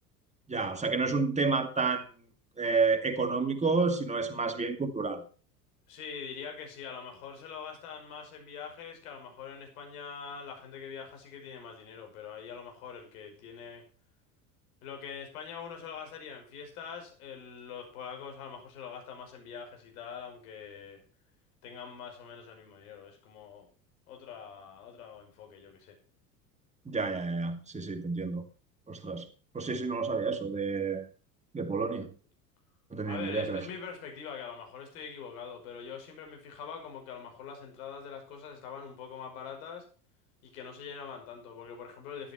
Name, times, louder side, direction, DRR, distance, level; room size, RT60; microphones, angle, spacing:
voice 1, 0.5-2.0 2.6-5.2 26.9-28.4 28.9-29.3 29.5-31.1 31.5-32.1 32.9-33.6, right 4 dB, 15° right, 2.4 m, -30 dB
voice 2, 5.9-13.9 14.8-21.0 21.6-23.7 24.1-25.9 33.1-39.9 40.4-42.3, left 6 dB, 60° left, 5.7 m, -44 dB
12.5 x 11.5 x 4.5 m
figure-of-eight pair, 75°, 49 cm